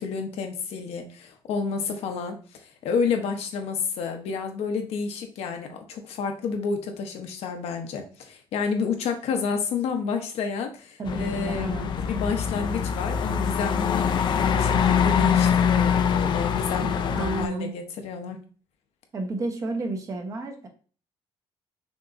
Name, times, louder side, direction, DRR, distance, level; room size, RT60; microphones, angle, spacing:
voice 1, 0.0-14.1 14.4-18.4, left 5 dB, 80° left, 5 dB, 0.9 m, -30 dB
voice 2, 11.0-11.9 16.8-17.7 19.1-20.7, right 2 dB, 30° right, 3 dB, 0.9 m, -31 dB
sound 1, 11.1-17.5, left 7 dB, 50° left, 0.4 m, -24 dB
6.1 x 3.0 x 2.5 m, 0.40 s
cardioid pair, 155°, 10 cm